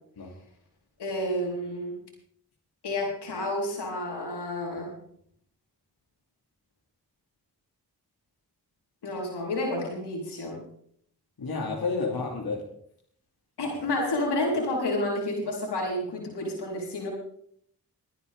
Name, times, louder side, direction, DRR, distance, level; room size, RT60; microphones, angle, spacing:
voice 1, 1.0-2.0 2.8-4.9 9.0-10.6 13.6-17.1, left 1 dB, 80° left, -1 dB, 4.5 m, -30 dB
voice 2, 11.4-12.6, left 4 dB, 65° left, -2 dB, 2.9 m, -30 dB
22.5 x 9.6 x 3.7 m, 0.66 s
supercardioid pair, 40°, 40 cm